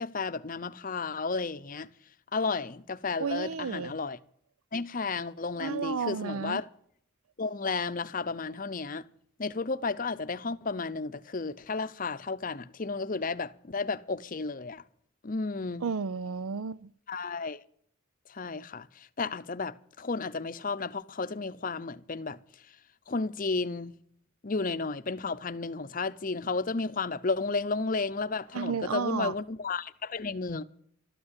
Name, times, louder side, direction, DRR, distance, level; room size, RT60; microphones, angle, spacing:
voice 1, 0.0-1.9 2.3-4.2 4.7-6.7 7.4-9.1 9.4-14.8 15.2-15.8 17.1-17.6 18.3-22.4 23.1-23.9 24.4-30.6, left 4 dB, 40° left, 0.6 m, -33 dB
voice 2, 3.2-3.9 5.6-6.6 15.8-16.9 28.5-29.3, right 6 dB, 85° right, 0.5 m, -32 dB
13.0 x 11.5 x 8.3 m
head